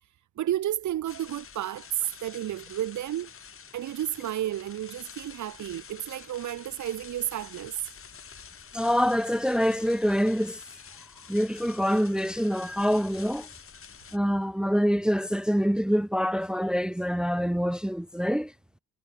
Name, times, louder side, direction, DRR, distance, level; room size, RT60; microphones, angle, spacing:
voice 1, 0.4-3.3 3.7-7.9, right 12 dB, 75° right, 2.7 m, -32 dB
sound 1, 1.1-14.2, left 7 dB, 45° left, 4.8 m, -48 dB
voice 2, 8.7-10.6 11.3-13.5 14.1-18.5, equal, 5° right, 0.7 m, -25 dB
cardioid pair, 90°, 30 cm